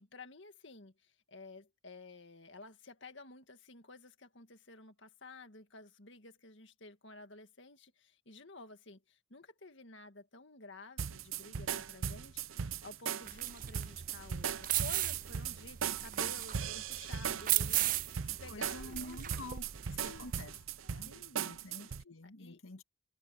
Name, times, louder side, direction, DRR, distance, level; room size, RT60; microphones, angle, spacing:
voice 1, 0.0-19.5 20.0-20.3 21.0-21.6 22.4-22.6, left 3 dB, 60° left, 2.0 m, -53 dB
sound 1, 11.0-22.0, right 7 dB, 80° right, 0.7 m, -39 dB
sound 2, 13.3-20.4, right 14 dB, 40° right, 0.4 m, -37 dB
voice 2, 18.5-20.5 20.8-22.8, left 2 dB, 85° left, 1.9 m, -49 dB
head